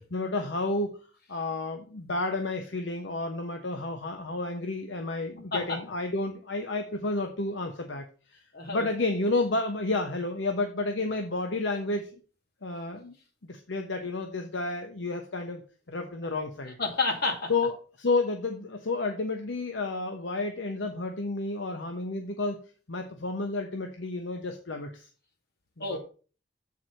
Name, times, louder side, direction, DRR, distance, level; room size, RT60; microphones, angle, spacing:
voice 1, 0.1-1.0 1.3-8.0 8.7-12.1 12.6-13.1 13.5-15.6 15.9-16.8 17.5-17.7 18.0-22.6 22.9-25.1 25.9-26.0, left 2 dB, 75° left, 4 dB, 0.9 m, -31 dB
voice 2, 8.5-8.9 16.8-17.5 25.8-26.0, left 3 dB, 60° left, 2 dB, 2.2 m, -29 dB
7.7 x 4.8 x 5.6 m, 0.37 s
head